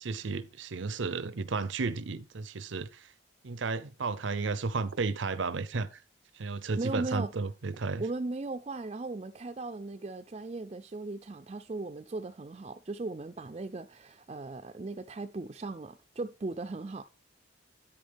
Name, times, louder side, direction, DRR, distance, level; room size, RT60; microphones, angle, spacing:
voice 1, 0.0-3.1 3.4-6.0 6.3-8.0, right 4 dB, 75° right, 0.6 m, -33 dB
voice 2, 6.8-7.3 8.0-17.0, right 3 dB, 30° right, 0.4 m, -37 dB
10.0 x 8.6 x 3.4 m
head